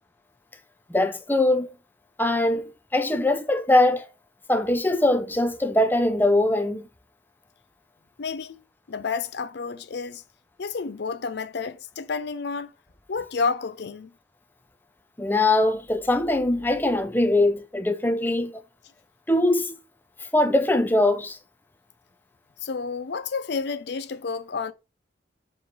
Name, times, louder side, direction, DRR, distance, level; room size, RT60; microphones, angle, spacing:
voice 1, 0.9-1.8 2.2-4.1 4.5-6.9 15.2-18.6 19.3-19.8 20.3-21.4, left 1 dB, 10° left, 0.7 m, -22 dB
voice 2, 8.2-8.6 8.9-10.2 10.6-12.7 13.1-14.1 22.6-24.7, left 5 dB, 55° left, 0.5 m, -30 dB
7.5 x 3.2 x 4.5 m
head